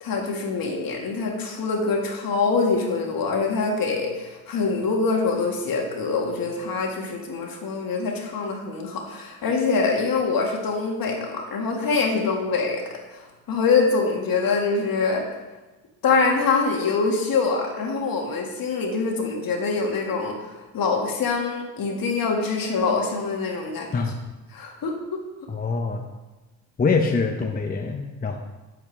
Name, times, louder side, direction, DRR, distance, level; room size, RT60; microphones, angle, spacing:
voice 1, 0.0-12.8 13.1-13.2 13.5-15.2 16.0-20.3 20.7-23.9 24.5-24.9, left 4 dB, 55° left, 1 dB, 1.8 m, -24 dB
voice 2, 25.5-26.0 26.8-28.4, left 4 dB, 20° left, 3 dB, 0.7 m, -24 dB
7.7 x 7.2 x 3.3 m, 1.1 s
supercardioid pair, 65°, 41 cm